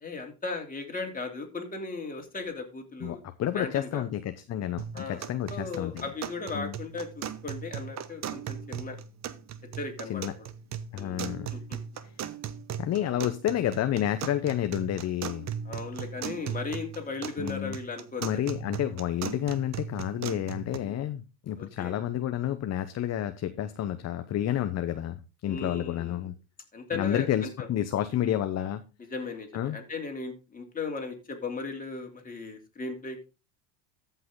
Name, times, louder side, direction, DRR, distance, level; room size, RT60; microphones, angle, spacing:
voice 1, 0.0-3.2 3.5-4.0 4.9-9.0 9.8-10.5 10.9-11.2 11.5-11.8 13.0-13.1 15.6-18.4 20.8-21.0 21.6-21.9 25.4-26.3 26.7-27.7 29.1-33.2, left 3 dB, 20° left, 3 dB, 3.0 m, -37 dB
voice 2, 3.0-6.1 6.5-6.7 10.1-10.3 10.9-11.5 12.8-15.5 17.4-17.8 18.2-26.3 26.9-28.8 29.5-29.8, left 11 dB, 35° left, 10 dB, 0.8 m, -30 dB
sound 1, 4.8-20.8, right 8 dB, 40° right, 1.0 m, -38 dB
14.0 x 5.7 x 3.7 m, 0.29 s
supercardioid pair, 105°, 44 cm